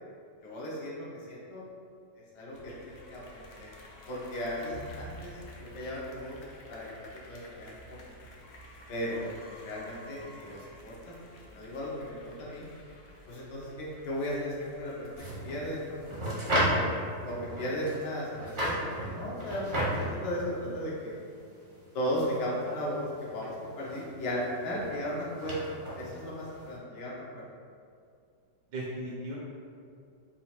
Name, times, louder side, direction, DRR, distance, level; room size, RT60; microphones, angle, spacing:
voice 1, 0.4-1.6 2.3-3.7 4.1-5.4 5.7-6.4 6.7-8.2 8.9-9.3 9.6-11.1 11.5-12.7 13.3-21.2 21.9-25.6 25.9-27.2, equal, 70° left, -5 dB, 1.5 m, -36 dB
sound 1, 2.5-16.8, left 1 dB, 85° left, 0.6 m, -51 dB
voice 2, 5.3-5.7 10.2-10.3 28.7-29.4, right 1 dB, 75° right, -4 dB, 1.3 m, -39 dB
sound 2, 15.2-26.7, equal, 40° right, 0.7 m, -35 dB
4.5 x 2.4 x 4.2 m, 2.3 s
omnidirectional pair, 1.9 m